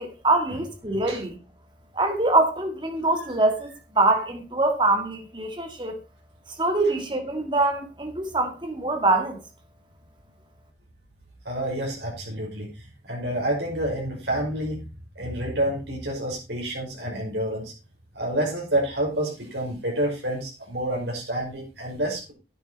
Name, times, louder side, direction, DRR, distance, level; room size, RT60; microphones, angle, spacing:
voice 1, 0.0-1.4 1.9-6.0 6.5-9.4, right 2 dB, 25° right, 2.0 m, -24 dB
voice 2, 11.5-12.7 13.0-14.9 15.2-17.7 18.1-22.3, right 1 dB, 70° right, 5.5 m, -28 dB
10.5 x 9.6 x 4.1 m
head